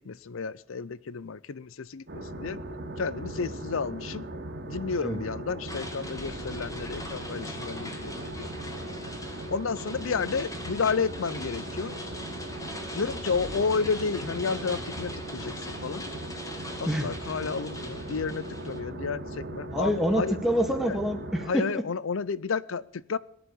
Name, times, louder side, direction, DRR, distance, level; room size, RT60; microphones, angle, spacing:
voice 1, 0.0-2.6 3.0-4.3 4.7-8.5 9.5-11.9 12.9-16.0 16.8-20.4 21.5-23.2, left 5 dB, 70° left, 20 dB, 0.6 m, -31 dB
sound 1, 2.1-21.5, right 1 dB, 55° right, 2.3 m, -38 dB
sound 2, 5.7-18.8, left 1 dB, 15° left, 2.1 m, -42 dB
sound 3, 6.1-7.7 13.3-16.4, left 1 dB, 35° left, 1.7 m, -49 dB
voice 2, 19.7-21.8, equal, ahead, 3 dB, 1.9 m, -27 dB
18.0 x 11.0 x 7.1 m, 0.68 s
head